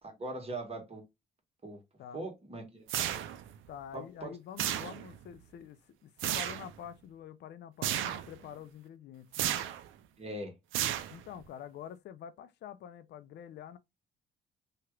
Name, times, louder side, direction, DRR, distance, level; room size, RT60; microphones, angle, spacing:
voice 1, 0.0-1.0 1.6-1.8 2.1-3.1 3.9-4.4 10.2-10.5, right 2 dB, 30° right, 1.4 m, -41 dB
sound 1, 2.9-3.6 4.6-5.2 6.2-6.7 7.8-8.3 9.3-9.9 10.7-11.4, right 11 dB, 85° right, 0.4 m, -33 dB
voice 2, 3.7-9.6 11.1-13.8, left 9 dB, 60° left, 0.4 m, -47 dB
2.9 x 2.4 x 3.0 m
cardioid pair, 90°, 20 cm